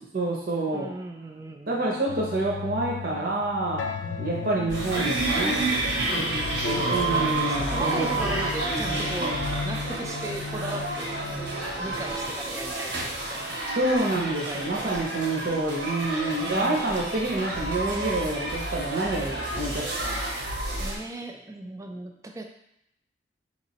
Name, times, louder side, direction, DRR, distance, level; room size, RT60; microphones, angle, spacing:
voice 1, 0.1-0.9 1.7-3.8 4.2-5.6 6.9-8.4 13.8-20.2, right 2 dB, 55° right, -3 dB, 0.7 m, -27 dB
voice 2, 0.7-2.0 4.0-4.4 6.1-11.2 11.8-13.6 14.1-15.2 16.4-16.9 20.8-22.4, right 2 dB, 15° right, 4 dB, 0.3 m, -38 dB
sound 1, 2.1-11.5, left 6 dB, 80° left, 0.3 m, -36 dB
sound 2, 4.7-21.0, right 2 dB, 85° right, 1.0 m, -29 dB
4.8 x 3.0 x 2.8 m, 0.79 s
head